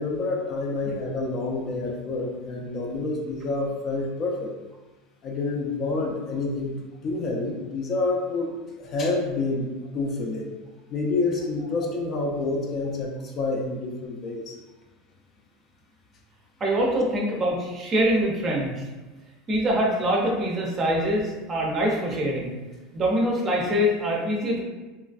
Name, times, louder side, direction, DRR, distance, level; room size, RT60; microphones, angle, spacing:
voice 1, 0.0-4.5 5.2-6.8 7.0-10.5 10.9-14.5, left 3 dB, 35° left, 0 dB, 0.4 m, -28 dB
voice 2, 16.6-18.8 19.5-22.5 22.9-24.6, equal, 25° right, -2 dB, 0.5 m, -24 dB
3.0 x 2.4 x 2.4 m, 1.2 s
supercardioid pair, 155°, 0 cm